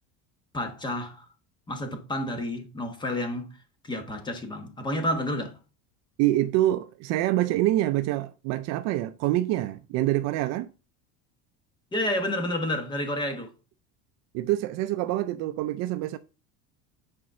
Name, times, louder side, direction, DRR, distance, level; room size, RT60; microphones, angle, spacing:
voice 1, 0.5-1.2 1.7-3.6 3.8-5.6 11.9-13.5, left 1 dB, 10° left, 1.2 m, -30 dB
voice 2, 6.2-10.7 14.3-16.2, right 15 dB, 50° right, 0.5 m, -26 dB
9.0 x 4.2 x 5.5 m
cardioid pair, 175°, 36 cm